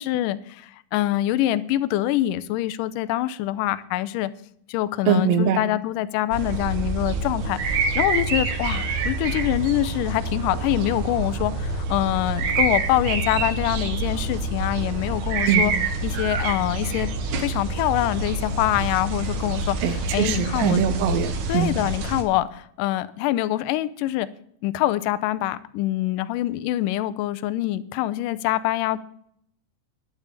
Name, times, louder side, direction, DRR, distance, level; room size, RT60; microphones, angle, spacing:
voice 1, 0.0-4.3 4.7-15.7 16.0-17.1 17.4-20.8 21.5-24.3 24.6-29.0, left 14 dB, 80° left, 2.0 m, -25 dB
voice 2, 5.1-5.6 15.5-15.7 19.8-21.7, right 7 dB, 85° right, 1.4 m, -22 dB
sound 1, 6.3-22.2, right 3 dB, 65° right, 2.6 m, -27 dB
11.5 x 7.0 x 8.2 m
omnidirectional pair, 4.3 m